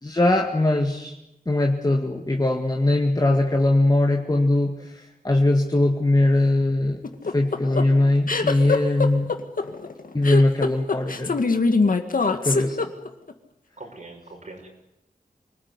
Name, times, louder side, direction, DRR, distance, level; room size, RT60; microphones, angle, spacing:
voice 1, 0.0-1.2 1.5-9.3 10.1-11.4 12.4-12.8, left 2 dB, 25° left, 3 dB, 2.1 m, -21 dB
sound 1, 7.0-13.3, left 4 dB, 70° left, 2.1 m, -23 dB
voice 2, 13.8-14.7, right 2 dB, 55° right, 2 dB, 6.4 m, -41 dB
25.5 x 19.5 x 9.9 m, 0.89 s
wide cardioid pair, 80°, 15 cm